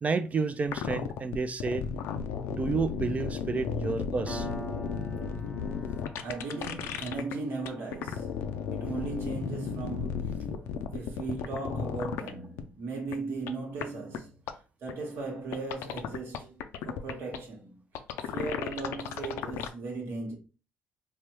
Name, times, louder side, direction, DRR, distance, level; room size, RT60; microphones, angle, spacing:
voice 1, 0.0-1.8 2.5-4.5, right 4 dB, 35° right, 0.3 m, -30 dB
sound 1, 0.7-7.3 7.7-12.3 12.6-12.7 13.1-13.2 13.5-13.6 13.8-13.9 14.1-14.2 14.5-14.6 14.9-15.0 15.5-17.4 18.0-19.7, left 7 dB, 75° left, 0.3 m, -34 dB
Piano, 4.3-11.4, right 3 dB, 25° left, 0.7 m, -46 dB
voice 2, 6.2-8.4 8.7-14.4 14.8-17.7 18.2-20.3, right 3 dB, 70° right, 1.0 m, -37 dB
3.3 x 2.1 x 2.9 m
supercardioid pair, 75°, 4 cm